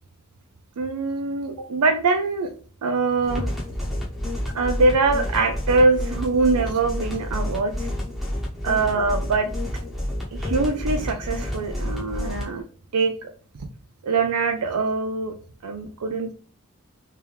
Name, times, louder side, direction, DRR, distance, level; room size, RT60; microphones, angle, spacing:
voice 1, 0.8-2.5 2.8-3.5 4.5-7.9 8.6-9.5 10.3-12.6 12.9-13.3 14.0-15.3 15.6-16.3, right 3 dB, 85° right, 5 dB, 0.5 m, -23 dB
sound 1, 3.2-12.4, left 1 dB, ahead, 1.0 m, -29 dB
3.4 x 3.1 x 3.4 m, 0.40 s
head